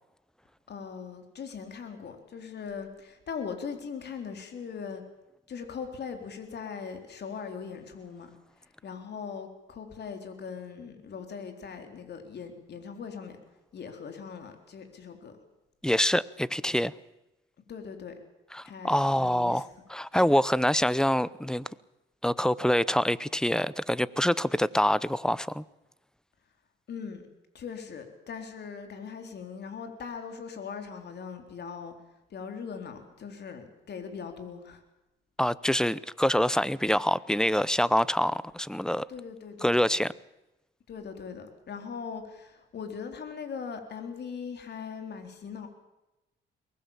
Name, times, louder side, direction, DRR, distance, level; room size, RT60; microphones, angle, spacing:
voice 1, 0.7-5.0 5.5-8.3 8.6-13.4 13.7-15.4 17.7-18.1 18.6-19.7 20.3-20.4 26.9-27.2 27.5-31.9 32.3-34.8 39.1-39.9 40.9-45.7, left 6 dB, 55° left, 6 dB, 3.9 m, -40 dB
voice 2, 15.8-16.9 18.5-21.7 22.2-25.6 35.4-39.1 39.6-40.1, equal, 5° left, 19 dB, 0.7 m, -25 dB
23.0 x 19.5 x 7.3 m, 0.97 s
cardioid pair, 90°, 20 cm